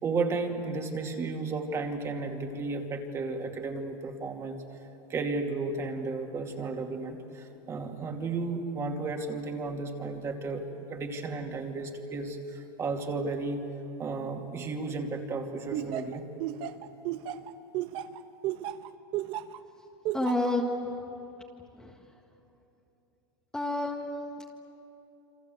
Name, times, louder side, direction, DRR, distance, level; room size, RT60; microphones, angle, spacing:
voice 1, 0.0-4.6 5.1-13.6 14.0-16.3, right 3 dB, 25° right, 3 dB, 2.6 m, -33 dB
Laughter, 15.7-19.6 20.0-20.5, right 13 dB, 45° right, 1.1 m, -33 dB
voice 2, 20.1-20.9 21.8-22.1 23.5-24.4, left 1 dB, 5° left, 0 dB, 1.7 m, -30 dB
28.5 x 25.5 x 7.9 m, 3.0 s
supercardioid pair, 145°, 12 cm